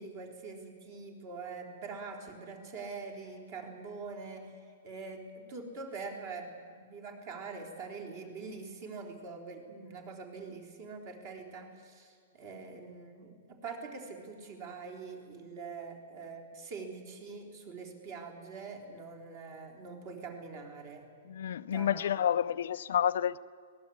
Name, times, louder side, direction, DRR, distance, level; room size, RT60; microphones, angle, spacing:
voice 1, 0.0-21.1 21.6-22.4, right 4 dB, 35° right, 3.9 m, -44 dB
voice 2, 21.3-23.4, left 9 dB, 65° left, 0.5 m, -29 dB
25.0 x 19.5 x 8.6 m
hypercardioid pair, 175°, 0 cm